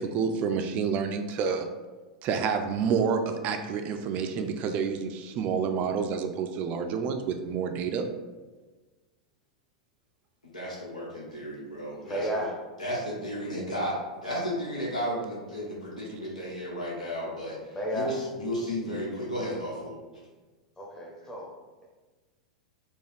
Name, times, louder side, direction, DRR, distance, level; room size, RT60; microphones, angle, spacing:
voice 1, 0.0-1.7 2.2-8.1, right 6 dB, 40° right, 6 dB, 0.4 m, -29 dB
voice 2, 10.4-12.4 12.8-17.6 17.9-19.9, equal, 85° left, -4 dB, 1.3 m, -33 dB
voice 3, 12.0-12.5 17.7-18.2 20.8-21.5, equal, 15° left, -2 dB, 1.1 m, -32 dB
4.4 x 2.4 x 3.4 m, 1.3 s
figure-of-eight pair, 95°, 4 cm